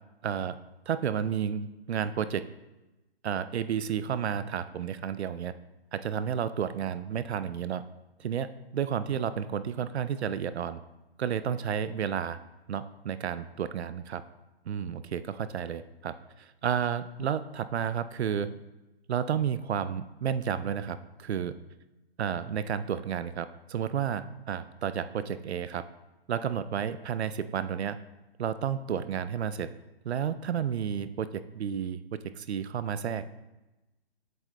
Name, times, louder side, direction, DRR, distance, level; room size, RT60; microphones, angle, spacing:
voice 1, 0.2-0.6 0.9-2.5 3.2-5.5 5.9-7.8 8.2-10.8 11.2-12.4 12.7-14.2 14.7-18.5 19.1-21.5 22.2-25.8 26.3-28.0 28.4-29.7 30.0-33.3, right 8 dB, 75° right, 13 dB, 0.5 m, -31 dB
7.8 x 7.3 x 2.2 m, 1.0 s
hypercardioid pair, 180°, 33 cm